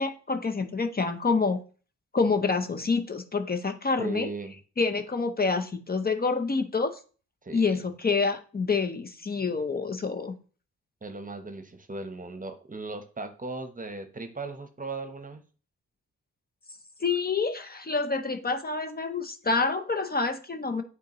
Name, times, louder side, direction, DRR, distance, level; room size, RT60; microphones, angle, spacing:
voice 1, 0.0-1.6 2.1-4.3 4.8-6.9 7.5-10.3 17.0-20.8, left 4 dB, 30° left, 7 dB, 0.7 m, -27 dB
voice 2, 4.0-4.5 7.4-7.8 11.0-15.4, right 3 dB, 25° right, 8 dB, 0.9 m, -37 dB
8.3 x 3.8 x 3.0 m, 0.39 s
cardioid pair, 60°, 30 cm